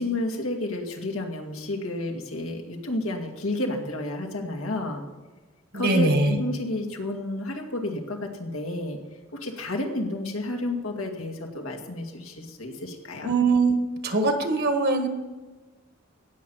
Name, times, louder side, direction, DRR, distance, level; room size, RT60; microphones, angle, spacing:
voice 1, 0.0-5.0 5.7-9.0 9.3-13.3, left 1 dB, 90° left, 2 dB, 2.2 m, -31 dB
voice 2, 5.7-6.4 13.2-13.8 14.0-15.1, right 3 dB, 50° right, 6 dB, 1.5 m, -22 dB
17.5 x 7.2 x 5.6 m, 1.2 s
head